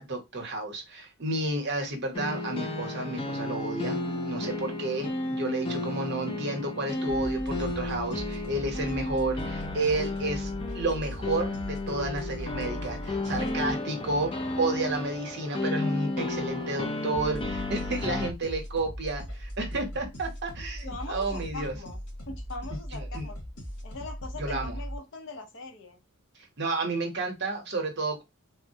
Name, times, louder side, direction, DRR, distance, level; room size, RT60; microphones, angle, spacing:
voice 1, 0.0-10.5 10.7-21.7 22.9-23.2 24.4-24.8 26.6-28.2, right 2 dB, 50° right, 0.8 m, -31 dB
sound 1, 2.1-18.3, left 2 dB, 25° left, 0.4 m, -33 dB
sound 2, 7.1-13.7 17.1-25.0, equal, 90° left, 1.2 m, -39 dB
voice 2, 20.8-22.0 22.3-23.4 23.8-26.0, left 2 dB, 55° left, 0.7 m, -41 dB
3.4 x 2.1 x 2.7 m
head